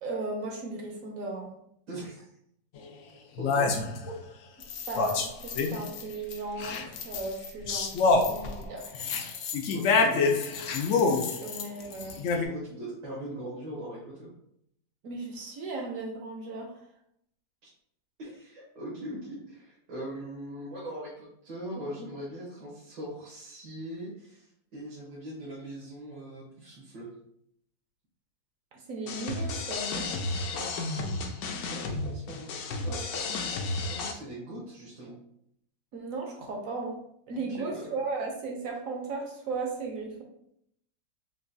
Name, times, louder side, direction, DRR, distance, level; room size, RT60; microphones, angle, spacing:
voice 1, 0.0-1.5 4.9-8.8 11.4-12.2 15.0-16.7 28.7-30.1 35.9-37.0 37.3-40.2, right 3 dB, 65° right, 1 dB, 0.9 m, -36 dB
voice 2, 1.9-2.3 3.4-3.7 9.7-10.4 12.4-14.3 17.6-17.7 18.2-27.1 30.4-30.8 31.4-33.4 33.9-35.1 37.5-37.9, right 1 dB, 85° right, -7 dB, 1.8 m, -41 dB
sound 1, 2.8-2.9 3.4-4.1 4.6-6.0 6.3-12.5, left 4 dB, 90° left, 0.6 m, -27 dB
sound 2, 29.1-34.1, left 3 dB, 70° left, 1.0 m, -33 dB
5.9 x 2.3 x 2.6 m, 0.73 s
omnidirectional pair, 1.9 m